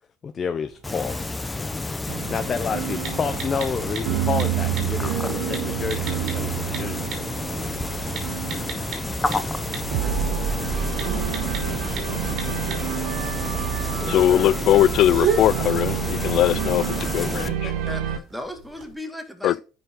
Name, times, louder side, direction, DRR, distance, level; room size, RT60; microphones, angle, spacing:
voice 1, 0.2-1.2 2.3-8.3 14.0-14.5, left 6 dB, 40° left, 0.8 m, -30 dB
texting with i-phone, 0.7-18.9, right 7 dB, 65° right, 2.9 m, -37 dB
sound 1, 0.8-17.5, left 2 dB, 15° left, 1.0 m, -30 dB
sound 2, 2.1-18.2, right 9 dB, 85° right, 1.0 m, -29 dB
voice 2, 10.0-10.4 17.6-19.6, left 1 dB, ahead, 2.3 m, -37 dB
voice 3, 14.1-17.7 19.4-19.5, left 12 dB, 65° left, 0.4 m, -20 dB
9.5 x 5.5 x 3.9 m
supercardioid pair, 85°, 0 cm